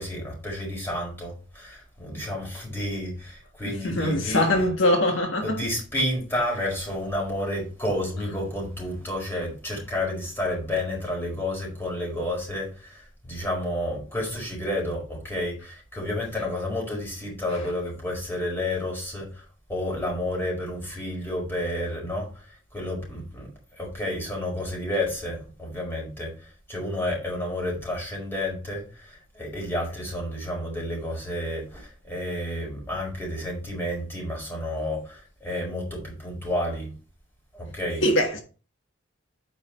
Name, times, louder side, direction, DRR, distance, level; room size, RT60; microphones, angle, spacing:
voice 1, 0.0-4.7 5.4-19.4 19.7-22.4 22.7-26.3 26.7-36.9 37.5-38.1, left 1 dB, 10° left, 4.8 m, -30 dB
voice 2, 3.8-5.6 38.0-38.4, left 1 dB, 75° left, 1.6 m, -22 dB
9.2 x 5.4 x 4.4 m
head